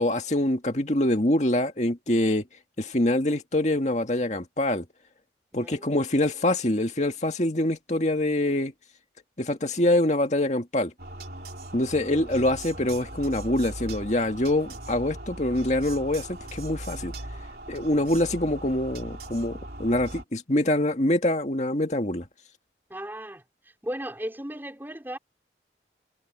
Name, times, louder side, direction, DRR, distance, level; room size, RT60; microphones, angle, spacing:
voice 1, 0.0-2.5 2.8-4.9 5.5-8.7 9.4-10.9 11.7-17.1 17.7-22.2, left 1 dB, 40° left, 2.1 m, -25 dB
voice 2, 5.5-6.0 11.8-12.4 22.9-25.2, equal, 10° right, 4.5 m, -37 dB
sound 1, 11.0-20.2, right 1 dB, 60° right, 3.3 m, -39 dB
head